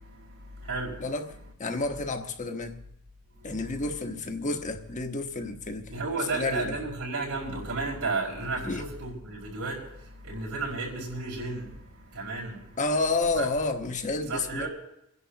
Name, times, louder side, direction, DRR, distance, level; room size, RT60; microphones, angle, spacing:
voice 1, 1.0-2.8 3.4-5.9 6.2-6.8 8.6-8.9 12.8-14.7, left 3 dB, 35° left, 5 dB, 1.2 m, -30 dB
voice 2, 5.9-9.8 10.3-11.7 12.1-12.6 13.4-13.5 14.3-14.7, right 3 dB, 90° right, -4 dB, 5.2 m, -32 dB
28.5 x 11.0 x 2.9 m, 0.80 s
head